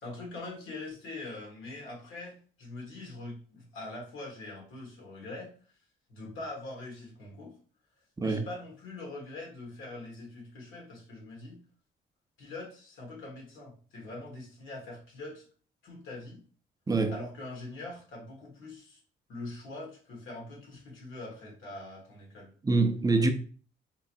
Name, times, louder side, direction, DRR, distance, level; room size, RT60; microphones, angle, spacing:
voice 1, 0.0-5.5 6.1-7.5 8.2-11.6 12.4-15.4 15.8-16.4 17.1-19.0 19.3-22.5, left 2 dB, 80° left, 1.7 m, -43 dB
voice 2, 22.6-23.3, right 3 dB, 20° right, 0.6 m, -25 dB
3.7 x 3.0 x 2.6 m
cardioid pair, 90°, 20 cm